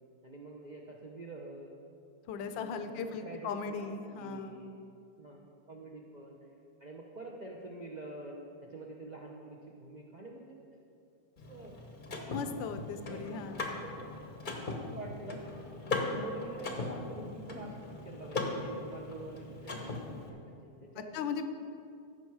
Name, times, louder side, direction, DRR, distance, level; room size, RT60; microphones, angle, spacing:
voice 1, 0.2-1.8 2.3-4.7 5.2-6.4 6.8-8.4 8.7-10.6 11.5-11.8 13.0-14.1 14.9-15.5 15.8-21.2, right 2 dB, 75° right, -1 dB, 0.4 m, -46 dB
voice 2, 2.3-4.7 12.3-13.6 21.1-21.5, left 5 dB, 80° left, 9 dB, 1.4 m, -38 dB
Car / Mechanisms, 11.4-20.3, left 3 dB, 40° left, 0.7 m, -39 dB
14.0 x 5.7 x 4.7 m, 2.5 s
omnidirectional pair, 2.1 m